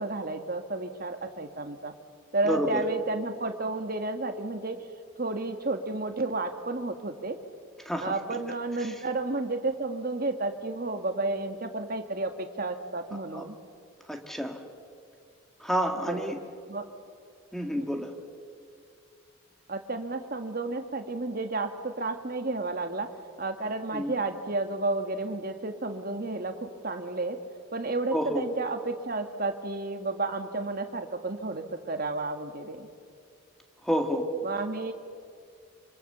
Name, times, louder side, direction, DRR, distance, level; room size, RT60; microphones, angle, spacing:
voice 1, 0.0-1.9 2.3-4.8 5.2-7.4 8.0-13.6 16.0-16.3 16.7-16.9 17.8-18.0 19.7-23.1 23.4-27.4 27.7-32.9 34.4-34.9, right 2 dB, 45° right, 6 dB, 1.6 m, -32 dB
voice 2, 2.4-2.8 7.9-8.1 8.8-8.9 13.3-13.4 14.1-14.6 15.6-16.4 17.5-18.1 23.9-24.1 28.1-28.4 33.8-34.3, equal, ahead, 3 dB, 2.0 m, -29 dB
26.5 x 25.5 x 6.9 m, 2.3 s
head